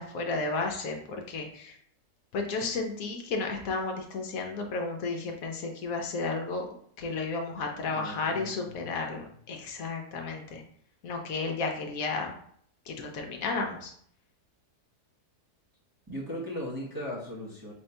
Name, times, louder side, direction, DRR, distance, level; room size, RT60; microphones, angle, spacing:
voice 1, 0.0-1.8 2.3-6.7 7.0-10.6 11.0-12.3 12.9-13.9, left 3 dB, 70° left, 3 dB, 1.1 m, -33 dB
voice 2, 7.9-8.9 16.1-17.7, equal, 20° right, -6 dB, 0.7 m, -38 dB
3.5 x 2.7 x 4.3 m, 0.63 s
omnidirectional pair, 1.7 m